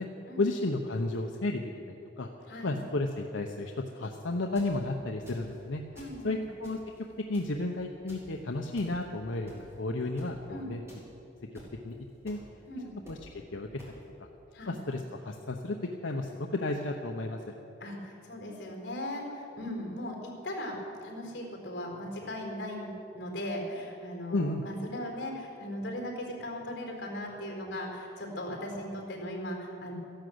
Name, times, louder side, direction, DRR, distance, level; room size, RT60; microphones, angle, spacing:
voice 1, 0.4-2.3 2.6-5.8 6.2-6.8 7.3-10.8 11.8-12.0 12.2-12.4 13.1-13.7 14.7-15.8 16.0-17.4 24.3-24.6, left 2 dB, 85° left, 2 dB, 0.9 m, -32 dB
sound 1, 4.4-4.8 5.3-5.6 6.0-6.2 6.6-7.0 7.3-7.6 8.1-8.3 8.8-8.9 9.5-9.7 10.2-10.3 10.9-11.0 11.5-11.7 12.3-12.4 13.0-13.2 13.8-13.9, equal, 15° right, 3.5 m, -51 dB
voice 2, 5.9-6.4 10.5-10.8 12.7-12.9 14.5-14.8 17.8-29.9, left 1 dB, 60° left, 0 dB, 4.1 m, -38 dB
14.5 x 11.5 x 7.9 m, 2.9 s
head